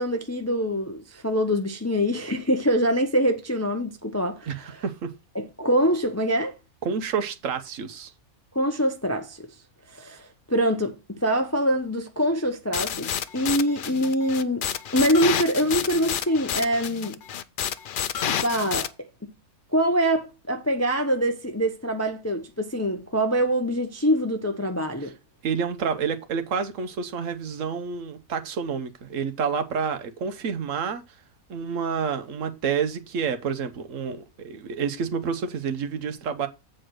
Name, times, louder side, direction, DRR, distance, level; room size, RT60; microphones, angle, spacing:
voice 1, 0.0-4.5 5.3-6.5 8.5-9.5 9.9-14.7 14.9-17.2 18.3-18.9 19.2-19.3 19.7-25.1, equal, 20° left, 0.5 m, -24 dB
voice 2, 4.5-5.1 6.8-8.1 25.0-25.1 25.4-31.0 31.5-36.5, right 6 dB, 65° right, 1.2 m, -29 dB
sound 1, 12.7-18.9, left 9 dB, 85° left, 0.4 m, -29 dB
7.5 x 4.6 x 6.3 m
omnidirectional pair, 1.5 m